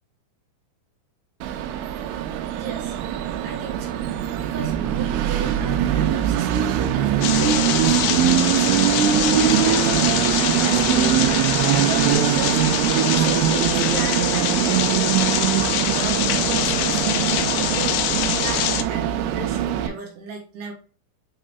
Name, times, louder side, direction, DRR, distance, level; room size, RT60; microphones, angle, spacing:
Train, 1.4-19.9, right 10 dB, 90° right, 3.4 m, -22 dB
voice 1, 2.6-3.0 3.4-4.0 4.4-11.2 11.8-12.8 13.1-15.4 15.9-18.0 18.4-20.7, right 4 dB, 70° right, 0 dB, 3.0 m, -36 dB
sound 1, 7.2-18.8, left 12 dB, 85° left, 3.3 m, -24 dB
8.9 x 3.7 x 3.3 m, 0.38 s
omnidirectional pair, 5.8 m